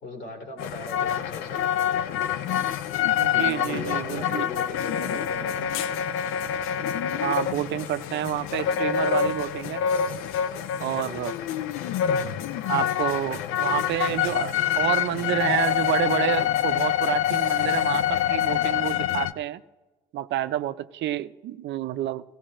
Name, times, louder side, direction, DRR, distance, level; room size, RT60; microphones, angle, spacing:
voice 1, 0.0-1.6 3.3-5.7, left 2 dB, 55° left, 1 dB, 2.6 m, -37 dB
sound 1, 0.6-19.3, left 9 dB, 75° left, 0.5 m, -26 dB
voice 2, 3.2-4.5 7.2-9.8 10.8-11.3 12.7-19.6 20.1-22.2, right 12 dB, 60° right, 12 dB, 0.5 m, -29 dB
17.0 x 17.0 x 2.5 m, 1.2 s
supercardioid pair, 80°, 21 cm